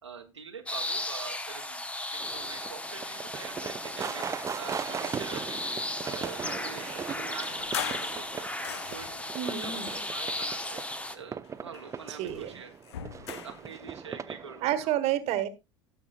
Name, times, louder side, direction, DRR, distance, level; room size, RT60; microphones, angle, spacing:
voice 1, 0.0-4.2 4.5-5.6 6.0-10.8 11.1-12.7 13.0-15.0, right 5 dB, 85° right, 2 dB, 1.0 m, -45 dB
sound 1, 0.7-11.1, left 1 dB, 10° left, 1.0 m, -36 dB
sound 2, 2.2-14.9, right 7 dB, 20° right, 0.6 m, -39 dB
sound 3, 7.4-9.3 10.0-11.1 11.4-13.7, left 10 dB, 65° left, 0.6 m, -41 dB
voice 2, 9.3-10.0 12.1-12.6 14.6-15.5, right 12 dB, 50° right, 12 dB, 1.4 m, -30 dB
18.0 x 7.1 x 2.3 m, 0.24 s
figure-of-eight pair, 70°, 15 cm